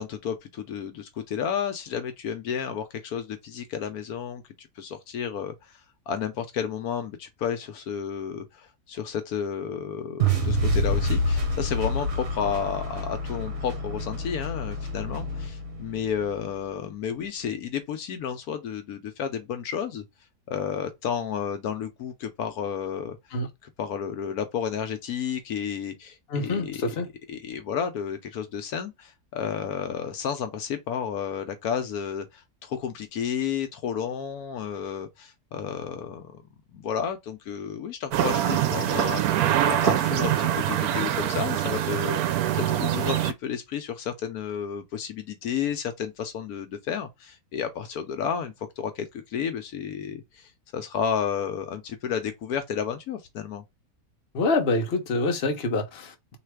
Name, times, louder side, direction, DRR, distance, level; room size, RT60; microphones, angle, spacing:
voice 1, 0.0-5.8 6.1-20.0 20.5-23.2 23.6-26.8 27.3-36.4 36.7-39.2 39.6-42.2 42.5-53.6, left 7 dB, 75° left, 1.1 m, -32 dB
sound 1, 10.2-16.4, equal, 55° right, 1.3 m, -27 dB
voice 2, 26.3-27.1 54.3-56.4, left 3 dB, 45° left, 1.0 m, -26 dB
sound 2, 38.1-43.3, right 11 dB, 75° right, 1.0 m, -24 dB
3.3 x 2.9 x 4.6 m
omnidirectional pair, 1.6 m